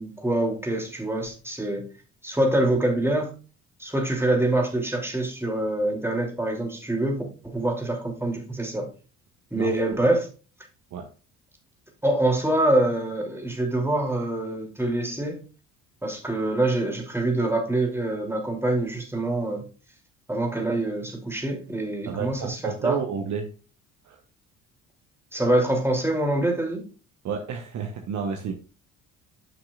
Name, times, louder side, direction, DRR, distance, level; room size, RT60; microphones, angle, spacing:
voice 1, 0.0-1.9 2.2-3.3 3.8-8.9 9.5-10.3 12.0-15.4 16.0-19.6 20.3-23.0 25.3-26.9, right 1 dB, 5° right, 2.8 m, -25 dB
voice 2, 9.5-10.0 10.9-11.1 22.1-23.5 24.0-24.2 27.2-28.5, right 6 dB, 40° right, 1.0 m, -31 dB
12.5 x 5.9 x 2.4 m
figure-of-eight pair, 50°, 43 cm